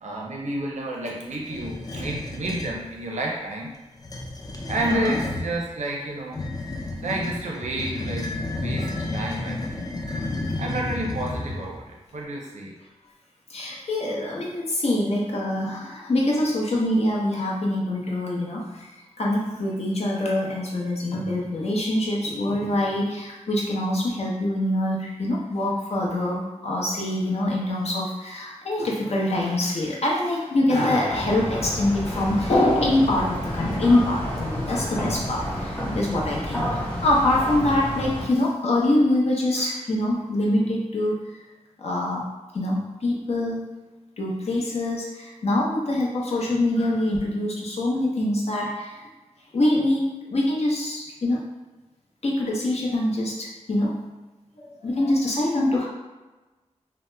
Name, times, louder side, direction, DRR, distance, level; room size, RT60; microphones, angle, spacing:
voice 1, 0.0-3.8 4.7-6.4 7.0-9.9 10.6-12.8, right 1 dB, 85° right, -1 dB, 0.6 m, -30 dB
sound 1, 1.5-2.8 3.9-5.5 6.3-11.8, left 2 dB, 35° left, 0.4 m, -31 dB
voice 2, 13.5-18.9 19.2-41.2 41.8-42.2 42.5-43.8 44.2-49.0 49.5-51.4 52.2-54.1 54.6-55.9, left 1 dB, 65° left, -3 dB, 0.7 m, -24 dB
sound 2, 31.1-38.2, equal, 15° left, 0.8 m, -30 dB
2.8 x 2.0 x 3.3 m, 1.2 s
wide cardioid pair, 100°, 12 cm